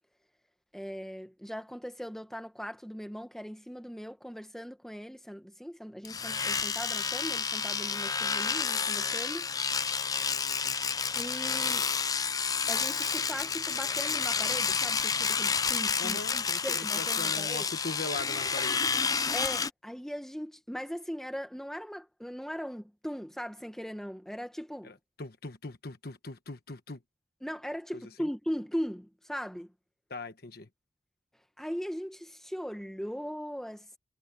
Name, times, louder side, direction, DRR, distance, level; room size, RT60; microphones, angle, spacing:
voice 1, 0.7-9.8 11.1-11.9 12.7-17.7 19.3-24.9 27.4-29.7 31.6-33.9, equal, ahead, 1.4 m, -39 dB
Domestic sounds home sounds, 6.0-19.7, left 6 dB, 20° left, 0.5 m, -30 dB
voice 2, 16.0-19.0 24.8-27.0 28.2-28.3 30.1-30.7, left 3 dB, 55° left, 1.3 m, -40 dB
head